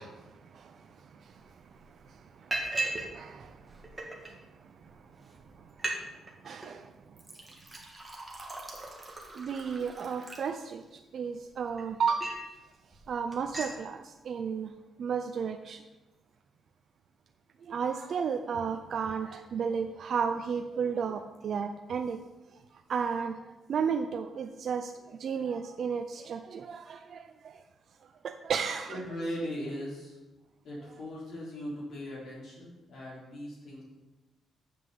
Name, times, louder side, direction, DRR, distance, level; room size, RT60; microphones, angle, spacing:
voice 1, 0.0-7.2 9.3-12.4 13.1-14.7 15.0-15.8 17.6-22.3 22.7-27.6 28.0-29.0, right 6 dB, 50° right, 6 dB, 0.5 m, -34 dB
Liquid, 1.3-1.4 1.8-2.0 2.5-3.1 3.4-4.3 5.0-5.1 5.4-5.5 5.7-6.0 6.3-6.7 7.2-11.0 11.5-12.5 12.9-13.1 13.3-13.8, right 2 dB, 10° right, 1.6 m, -38 dB
voice 2, 28.9-30.2 30.6-33.8, equal, 50° left, -5 dB, 4.0 m, -39 dB
7.8 x 6.2 x 7.2 m, 1.1 s
cardioid pair, 165°, 0 cm